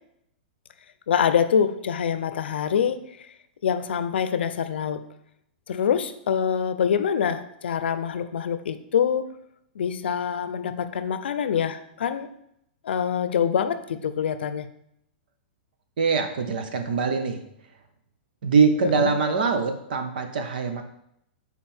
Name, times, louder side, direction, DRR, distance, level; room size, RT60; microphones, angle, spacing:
voice 1, 1.1-3.2 3.6-5.0 5.7-9.4 9.8-12.3 12.8-14.7 18.8-19.1, left 8 dB, 85° left, 11 dB, 0.6 m, -25 dB
voice 2, 16.0-17.4 18.4-20.8, right 5 dB, 55° right, 6 dB, 0.9 m, -23 dB
7.5 x 4.2 x 4.4 m, 0.76 s
supercardioid pair, 180°, 6 cm